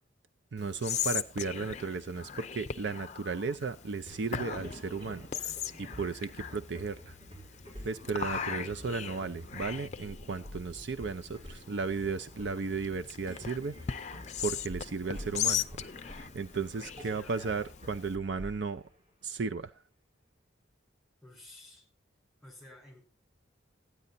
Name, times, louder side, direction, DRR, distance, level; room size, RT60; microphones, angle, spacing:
voice 1, 0.5-5.5 5.8-7.2 7.8-18.8 19.2-19.7, right 4 dB, 60° right, 10 dB, 0.5 m, -35 dB
Whispering, 0.6-18.2, left 8 dB, 35° left, 0.5 m, -39 dB
sound 1, 4.1-19.7, equal, 30° right, 6.7 m, -49 dB
voice 2, 17.0-17.4 21.2-21.9 22.4-23.0, left 1 dB, ahead, 0 dB, 5.1 m, -52 dB
13.5 x 9.6 x 4.0 m, 0.29 s
head